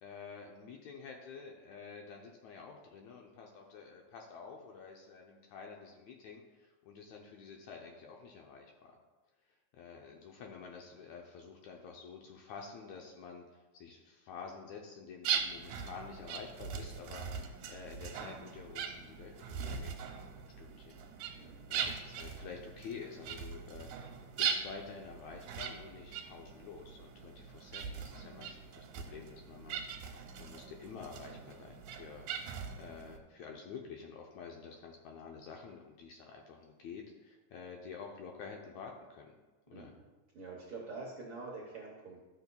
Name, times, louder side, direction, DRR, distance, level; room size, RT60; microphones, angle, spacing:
voice 1, 0.0-8.9 9.7-20.3 20.6-21.0 21.3-21.4 21.7-39.4 39.7-39.9, left 5 dB, 75° left, 1 dB, 1.7 m, -49 dB
sound 1, 15.2-33.2, right 7 dB, 90° right, 2.5 m, -41 dB
voice 2, 21.3-21.7 39.7-40.0 40.3-42.2, right 3 dB, 65° right, -3 dB, 1.3 m, -46 dB
12.0 x 7.0 x 2.3 m, 1.2 s
omnidirectional pair, 3.8 m